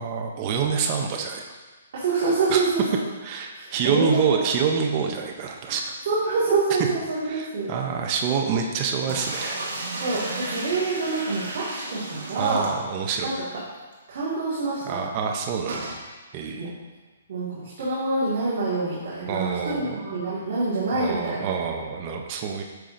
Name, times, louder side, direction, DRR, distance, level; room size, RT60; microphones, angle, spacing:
voice 1, 0.0-1.5 2.5-2.6 3.2-5.9 7.3-9.6 12.3-13.3 14.9-15.9 16.3-16.7 19.3-19.9 20.9-22.6, right 6 dB, 20° right, 2 dB, 0.5 m, -27 dB
voice 2, 1.9-3.0 3.5-4.4 6.1-7.7 10.0-12.7 13.2-13.3 14.1-15.0 16.6-16.7 17.3-21.5, right 3 dB, 45° right, -10 dB, 1.8 m, -26 dB
sound 1, 9.1-13.3 13.6-13.7 13.9-14.0 15.7-16.0, right 2 dB, 65° right, 1.5 m, -33 dB
9.0 x 5.3 x 2.5 m, 1.3 s
hypercardioid pair, 175°, 0 cm